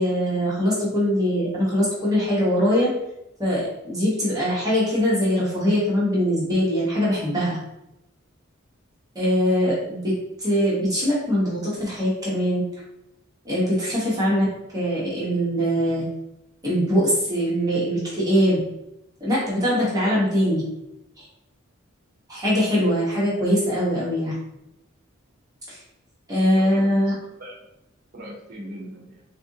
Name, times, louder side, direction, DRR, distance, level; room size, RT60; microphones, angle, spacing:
voice 1, 0.0-2.9 3.4-7.6 9.1-10.1 10.4-12.6 13.4-14.5 14.7-16.0 16.6-18.6 19.2-20.6 21.2-21.3 22.3-24.4 25.7-25.8 26.3-27.1, equal, 15° right, -8 dB, 0.9 m, -22 dB
voice 2, 26.5-27.6 28.1-29.2, equal, 45° right, -2 dB, 0.6 m, -40 dB
3.6 x 2.5 x 2.6 m, 0.88 s
head